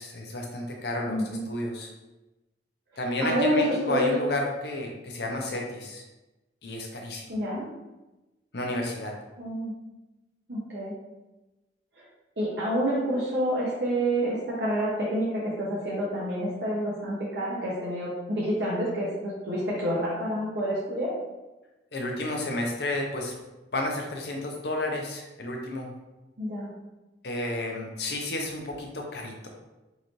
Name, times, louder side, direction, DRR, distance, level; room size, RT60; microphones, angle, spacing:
voice 1, 0.0-1.9 3.0-6.0 6.6-7.3 8.5-9.1 21.9-23.3 23.7-25.9 27.2-29.5, left 1 dB, 65° left, 1 dB, 0.7 m, -31 dB
voice 2, 1.1-1.4 2.9-4.1 7.3-7.7 9.4-9.7 10.5-10.9 12.4-21.1 26.4-26.7, equal, 70° right, -7 dB, 0.8 m, -28 dB
3.9 x 2.6 x 3.0 m, 1.1 s
head